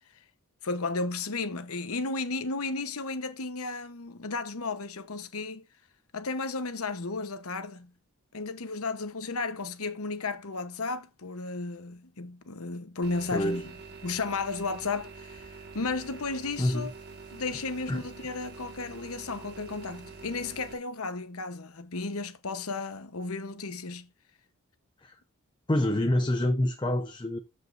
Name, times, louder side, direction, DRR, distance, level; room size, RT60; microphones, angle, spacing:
voice 1, 0.6-5.6 6.1-7.9 8.3-13.6 14.0-16.9 17.3-24.1, left 3 dB, 80° left, 1.0 m, -34 dB
sound 1, 13.0-20.7, right 4 dB, 50° right, 1.8 m, -46 dB
voice 2, 13.3-13.7 16.6-16.9 17.9-18.0 25.0-25.2 25.7-27.4, left 1 dB, 20° left, 0.7 m, -27 dB
13.5 x 5.3 x 2.6 m
head